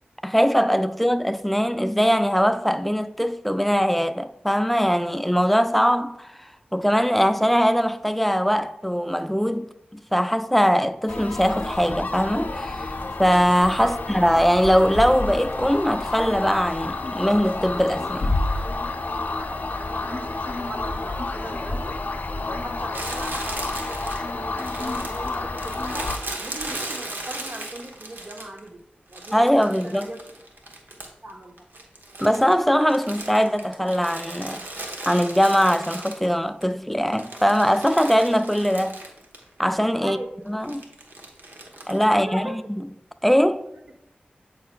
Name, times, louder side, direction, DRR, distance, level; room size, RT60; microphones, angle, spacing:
voice 1, 0.2-12.9 13.2-18.4 29.3-30.1 32.2-34.6 35.1-39.0 39.6-40.2 40.5-40.8 41.9-42.8 43.2-43.7, equal, 5° left, 0.4 m, -21 dB
sound 1, 11.1-26.2, left 2 dB, 60° left, 0.6 m, -29 dB
voice 2, 19.2-22.0 22.5-26.1 26.4-29.6 29.8-30.2 31.2-31.6 40.0-40.4 42.1-42.6, right 1 dB, 50° right, 0.9 m, -39 dB
Crumpling crinkling, 22.9-28.7 29.1-31.3 31.6-36.6 37.0-39.4 39.7-39.8 40.6-42.0, right 2 dB, 80° right, 0.9 m, -37 dB
8.3 x 5.5 x 2.2 m
cardioid pair, 45°, 4 cm